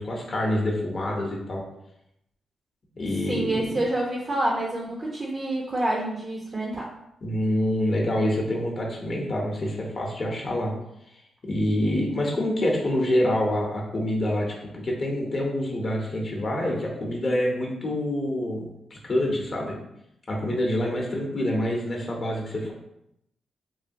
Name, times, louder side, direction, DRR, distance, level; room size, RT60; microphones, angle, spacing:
voice 1, 0.0-1.6 3.0-3.8 7.2-10.7 11.4-19.7 20.3-22.7, left 1 dB, 40° left, -1 dB, 0.7 m, -26 dB
voice 2, 3.3-6.9, right 1 dB, 35° right, -2 dB, 0.5 m, -27 dB
3.1 x 2.2 x 2.6 m, 0.78 s
cardioid pair, 85°, 0 cm